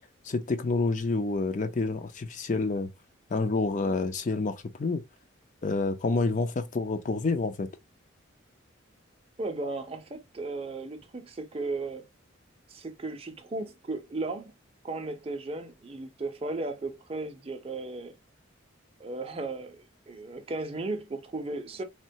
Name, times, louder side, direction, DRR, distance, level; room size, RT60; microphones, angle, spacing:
voice 1, 0.2-2.9 3.3-5.0 5.6-7.7, left 3 dB, 40° left, 0.4 m, -28 dB
voice 2, 9.4-12.1 12.7-14.5 14.8-18.1 19.0-21.8, right 2 dB, 30° right, 0.5 m, -35 dB
3.7 x 2.2 x 2.6 m
head